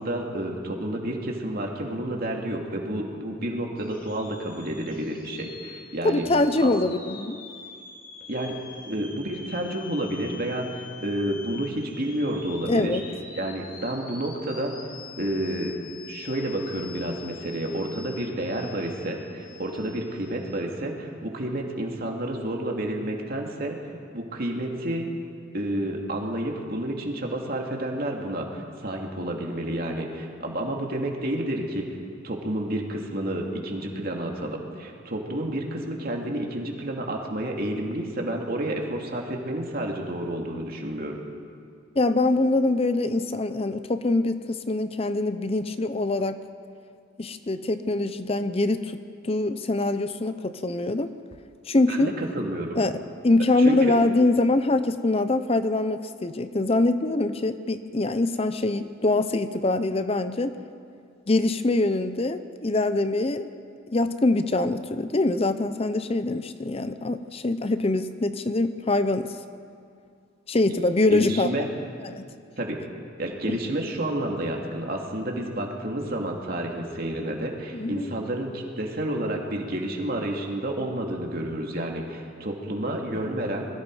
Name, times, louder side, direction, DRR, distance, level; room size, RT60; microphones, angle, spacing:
voice 1, 0.0-6.2 6.6-6.7 8.3-8.6 8.9-13.0 13.3-14.7 15.2-15.7 16.1-23.8 24.1-25.1 25.5-31.8 32.2-41.2 51.9-52.8 53.6-53.8 71.1-71.7 72.6-72.8 73.2-83.7, right 1 dB, 50° right, 0 dB, 2.7 m, -30 dB
sound 1, 3.8-20.5, left 6 dB, 45° left, 2.3 m, -45 dB
voice 2, 6.0-7.4 12.6-13.0 42.0-46.4 47.2-49.0 49.2-51.1 51.7-52.1 52.8-53.0 53.2-60.5 61.3-63.5 63.9-69.4 70.5-71.5 72.0-72.2 73.5-73.6 77.7-78.1, left 2 dB, 30° left, 11 dB, 0.6 m, -24 dB
25.5 x 21.5 x 4.9 m, 2.3 s
head